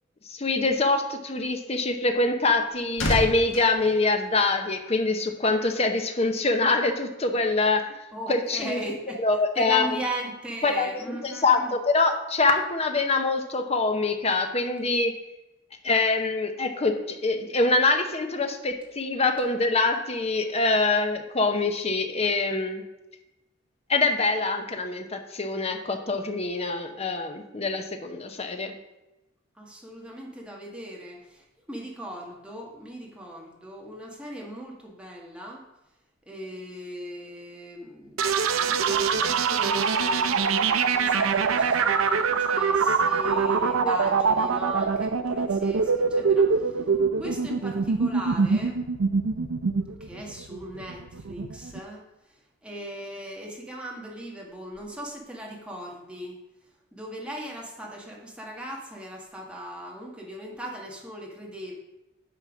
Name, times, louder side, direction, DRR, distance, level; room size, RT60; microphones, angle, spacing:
voice 1, 0.3-7.8 8.3-8.8 9.2-9.9 10.6-15.1 15.8-22.8 23.9-28.7 43.8-43.9, left 3 dB, 30° left, 5 dB, 0.9 m, -24 dB
sound 1, 2.2-4.9 5.2-5.5, equal, 75° left, 1.8 m, -32 dB
voice 2, 8.1-9.2 9.5-11.7 29.6-35.6 36.3-38.2 38.6-46.8 47.2-48.8 50.0-52.0 52.6-56.4 56.9-61.7, right 1 dB, 5° right, -1 dB, 1.5 m, -38 dB
sound 2, 38.2-51.8, right 5 dB, 85° right, 0.6 m, -24 dB
9.1 x 4.4 x 6.1 m, 0.96 s
head